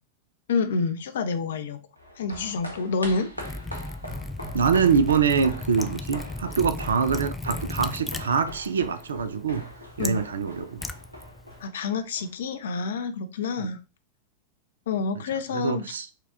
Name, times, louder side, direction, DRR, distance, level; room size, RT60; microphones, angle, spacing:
voice 1, 0.5-1.8 2.2-3.3 10.0-10.2 11.6-13.8 14.9-15.8, left 4 dB, 60° left, 0.5 m, -28 dB
sound 1, 2.0-12.5 12.8-12.9, equal, 90° right, 0.8 m, -41 dB
Liquid, 3.4-11.6, left 2 dB, 10° left, 0.3 m, -37 dB
voice 2, 4.5-9.7 10.0-10.8 13.6-13.7 15.5-16.1, right 6 dB, 70° right, 0.4 m, -24 dB
4.5 x 2.3 x 3.5 m
figure-of-eight pair, 90°, 0 cm